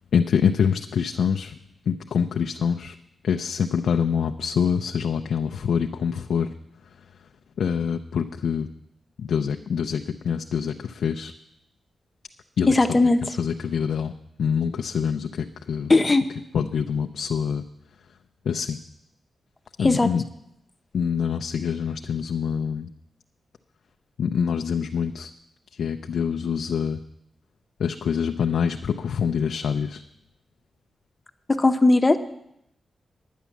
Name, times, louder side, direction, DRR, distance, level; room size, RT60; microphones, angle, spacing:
voice 1, 0.1-1.6 1.9-2.9 3.2-6.5 7.6-8.7 9.2-11.3 12.6-12.7 13.4-14.1 14.4-15.9 16.5-17.6 18.5-18.8 19.8-20.2 20.9-22.9 24.2-25.3 25.8-27.0 27.8-30.0, left 7 dB, 90° left, 5 dB, 0.5 m, -25 dB
voice 2, 12.7-13.4 15.9-16.2 19.8-20.1 31.5-32.2, left 2 dB, 25° left, 8 dB, 0.8 m, -18 dB
10.0 x 9.3 x 7.2 m, 0.81 s
wide cardioid pair, 120°, 0 cm